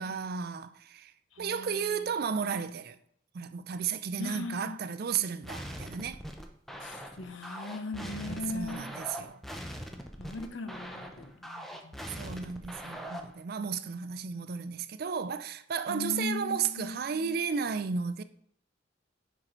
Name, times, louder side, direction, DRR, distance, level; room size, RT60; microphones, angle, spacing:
voice 1, 0.0-3.0 3.3-6.2 8.0-9.4 12.1-18.2, right 6 dB, 50° right, 0.4 m, -34 dB
voice 2, 1.4-2.0 4.2-4.8 6.8-8.8 10.2-11.9 15.9-17.3, left 3 dB, 75° left, 0.8 m, -39 dB
sound 1, 5.4-13.4, equal, ahead, 0.6 m, -42 dB
10.5 x 4.6 x 3.8 m
head